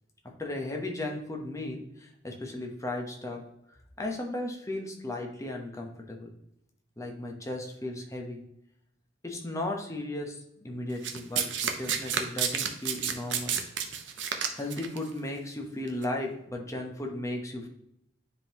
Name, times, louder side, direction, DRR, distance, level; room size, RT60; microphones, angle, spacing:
voice 1, 0.4-3.4 4.0-6.3 7.0-8.4 9.2-13.6 14.5-17.7, left 1 dB, 15° left, 1 dB, 1.0 m, -35 dB
Domestic sounds home sounds, 11.0-15.0 15.9-16.0, right 7 dB, 75° right, 0.7 m, -30 dB
9.8 x 3.8 x 3.0 m, 0.78 s
head